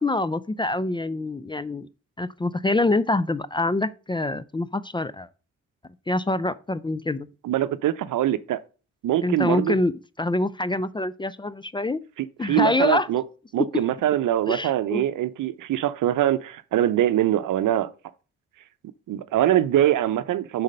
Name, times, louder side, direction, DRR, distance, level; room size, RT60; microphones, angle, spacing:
voice 1, 0.0-1.9 2.2-5.3 6.1-7.3 9.2-12.0 12.4-13.1 13.7-13.9 14.5-15.0, left 2 dB, 15° left, 0.4 m, -25 dB
voice 2, 7.4-8.6 9.0-9.8 12.2-13.2 13.5-17.9 19.1-20.6, right 12 dB, 70° right, 0.7 m, -23 dB
6.5 x 4.2 x 6.5 m
supercardioid pair, 60°, 32 cm